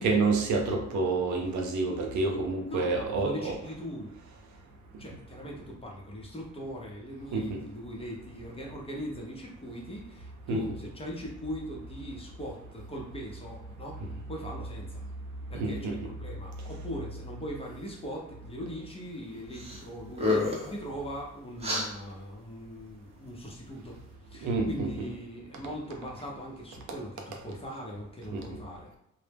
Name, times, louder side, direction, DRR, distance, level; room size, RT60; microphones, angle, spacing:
voice 1, 0.0-3.5 7.3-7.6 10.5-10.6 15.5-16.0 24.4-24.9 28.3-28.4, right 3 dB, 70° right, 2 dB, 0.6 m, -28 dB
voice 2, 2.6-4.1 5.0-14.0 14.3-15.0 15.5-28.9, equal, 20° left, -2 dB, 0.6 m, -40 dB
sound 1, 19.5-19.8 20.1-20.7 21.6-21.9, left 2 dB, 20° right, 0.7 m, -28 dB
2.1 x 2.0 x 3.3 m, 0.81 s
cardioid pair, 90°, 30 cm